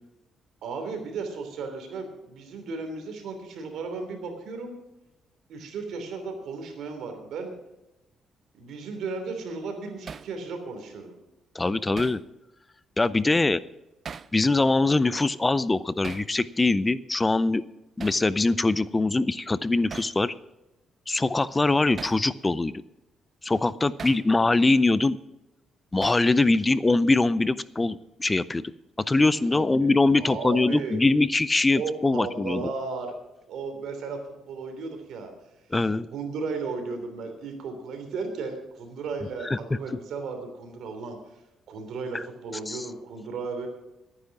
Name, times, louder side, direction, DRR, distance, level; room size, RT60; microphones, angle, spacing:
voice 1, 0.6-4.7 5.5-7.5 8.5-11.2 24.0-24.1 29.5-29.9 30.2-31.0 31.8-33.1 33.5-35.3 36.1-41.2 41.7-43.7, right 4 dB, 75° right, 6 dB, 3.1 m, -35 dB
Hammer, 10.1-10.3 12.0-12.2 14.0-14.4 16.0-16.3 18.0-18.3 19.9-20.2 22.0-22.2 24.0-24.3 26.0-26.3, right 6 dB, 45° right, 0.4 m, -39 dB
voice 2, 11.6-12.2 13.0-13.6 14.3-17.6 18.0-20.3 21.1-22.7 23.4-25.2 25.9-28.7 29.1-32.6 35.7-36.1 39.4-39.6 42.1-42.2 42.7-42.8, left 2 dB, 20° left, 17 dB, 0.4 m, -23 dB
13.5 x 9.7 x 6.0 m, 0.96 s
cardioid pair, 90°, 0 cm